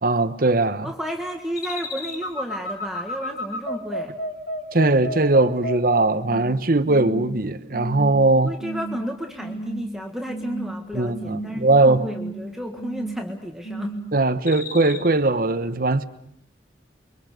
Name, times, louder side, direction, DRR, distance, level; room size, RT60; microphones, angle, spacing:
voice 1, 0.0-0.9 4.7-8.5 10.9-12.0 14.1-16.1, right 2 dB, 55° right, 1.2 m, -20 dB
voice 2, 0.8-4.1 8.4-13.9, equal, ahead, 1.7 m, -32 dB
sound 1, 1.6-6.5 6.9-7.3 7.7-8.2 8.6-9.0 9.4-9.9 10.3-10.8 11.1-11.6 11.9-12.4 12.8-13.3 13.6-14.1 14.5-15.0, right 1 dB, 60° left, 6.2 m, -32 dB
29.5 x 23.5 x 6.7 m
head